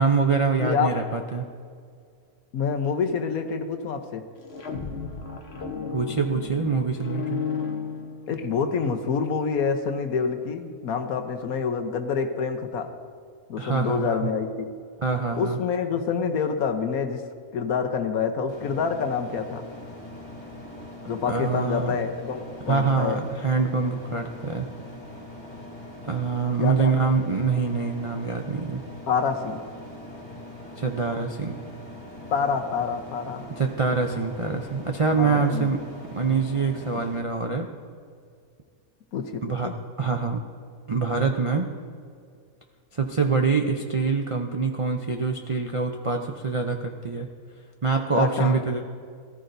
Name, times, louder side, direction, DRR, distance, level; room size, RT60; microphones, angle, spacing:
voice 1, 0.0-1.5 5.9-7.4 13.6-14.3 15.0-15.6 21.3-22.0 22.7-24.7 26.0-28.8 30.8-31.6 33.6-35.8 36.1-37.7 39.4-40.4 40.9-41.7 42.9-47.3 47.8-48.8, right 4 dB, 45° right, 2 dB, 0.4 m, -25 dB
voice 2, 0.6-0.9 2.5-4.2 8.3-12.9 13.5-14.7 15.3-17.2 17.5-19.6 21.1-23.2 26.6-26.9 29.1-29.6 32.3-33.5 35.2-35.7 36.9-37.0 39.1-39.8 48.2-48.6, left 6 dB, 75° left, 6 dB, 1.3 m, -27 dB
sound 1, 4.4-8.6, left 6 dB, 50° left, 1.2 m, -33 dB
sound 2, 18.5-37.2, left 1 dB, 25° left, 2.9 m, -42 dB
18.0 x 14.0 x 2.6 m, 2.2 s
omnidirectional pair, 1.5 m